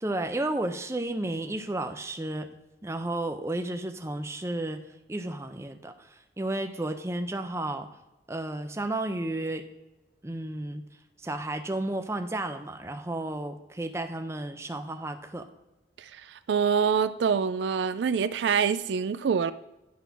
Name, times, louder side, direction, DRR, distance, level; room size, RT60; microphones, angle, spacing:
voice 1, 0.0-2.5 2.8-4.8 5.1-7.9 8.3-9.6 10.2-10.8 11.2-15.4, right 1 dB, 15° right, 6 dB, 0.5 m, -32 dB
voice 2, 16.3-19.5, right 6 dB, 65° right, 13 dB, 0.3 m, -25 dB
10.5 x 3.8 x 5.8 m, 0.98 s
head